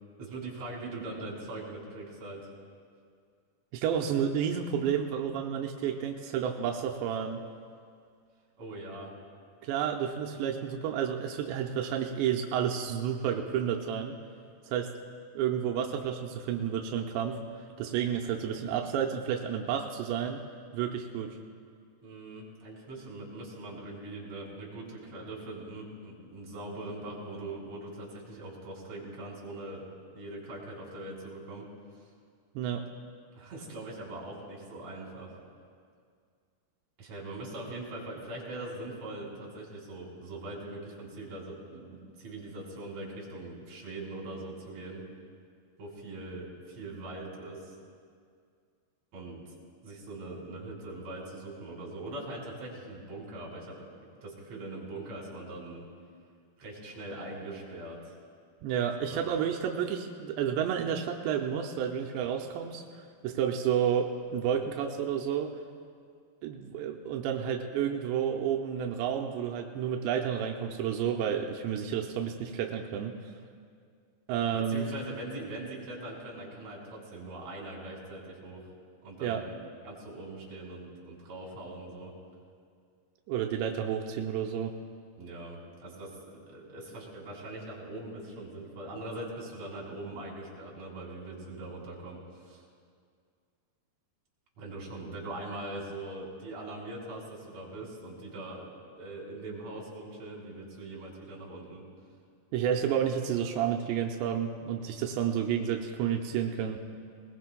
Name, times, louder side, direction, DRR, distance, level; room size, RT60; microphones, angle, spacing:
voice 1, 0.2-2.5 8.6-9.1 22.0-29.9 30.1-31.7 33.3-35.4 37.0-45.0 45.8-47.8 49.1-49.4 49.8-53.9 54.2-55.9 56.6-58.1 59.0-59.3 74.5-78.6 79.0-82.1 85.2-92.6 94.6-98.7 99.0-101.8, right 2 dB, 45° right, -3 dB, 3.8 m, -42 dB
voice 2, 3.7-7.4 9.6-14.1 14.7-14.9 15.4-17.4 17.8-20.4 20.7-21.4 32.6-32.8 58.6-65.5 66.4-73.2 74.3-74.9 79.2-79.4 83.3-84.7 102.5-106.8, right 8 dB, 90° right, 2 dB, 2.8 m, -30 dB
20.5 x 20.0 x 2.2 m, 2.2 s
omnidirectional pair, 5.0 m